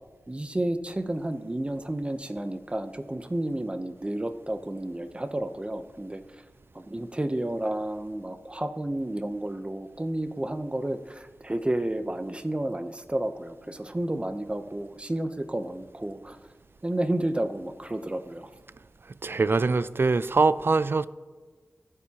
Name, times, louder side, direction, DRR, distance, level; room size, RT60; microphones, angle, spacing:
voice 1, 0.3-6.2 6.7-16.4 16.8-18.5, right 1 dB, 25° right, 9 dB, 0.8 m, -31 dB
voice 2, 19.2-21.1, right 3 dB, 50° right, 16 dB, 0.4 m, -23 dB
24.0 x 8.5 x 2.9 m, 1.3 s
wide cardioid pair, 65°, 5 cm